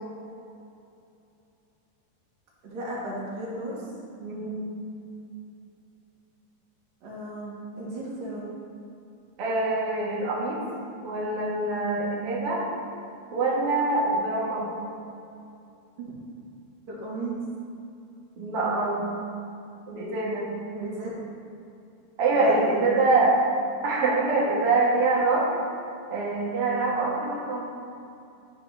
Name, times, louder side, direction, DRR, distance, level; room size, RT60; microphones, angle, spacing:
voice 1, 2.6-3.9 7.0-8.5 16.0-16.1 16.9-17.4 20.7-21.1 22.3-23.0, right 1 dB, 65° right, -6 dB, 3.5 m, -35 dB
voice 2, 4.2-4.6 9.4-10.6 11.0-12.6 13.3-14.7 18.4-19.1 19.9-20.5 22.2-23.4 23.8-25.4 26.1-27.6, right 3 dB, 45° right, -6 dB, 2.2 m, -24 dB
12.5 x 4.2 x 5.7 m, 2.6 s
omnidirectional pair, 4.3 m